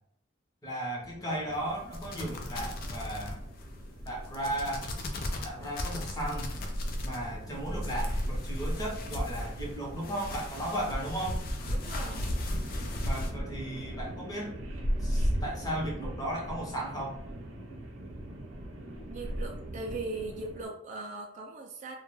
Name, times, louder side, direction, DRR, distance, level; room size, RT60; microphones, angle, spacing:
voice 1, 0.6-3.5 4.0-4.9 5.4-6.6 7.0-11.4 13.0-14.6 15.0-17.2, right 1 dB, 20° left, -2 dB, 0.7 m, -35 dB
sound 1, 1.0-20.6, equal, 80° right, 0.6 m, -38 dB
sound 2, 1.5-13.3, left 1 dB, 45° left, 0.4 m, -36 dB
voice 2, 11.7-12.3 19.1-22.0, right 2 dB, 40° right, 1 dB, 0.3 m, -39 dB
2.2 x 2.1 x 3.0 m, 0.67 s
head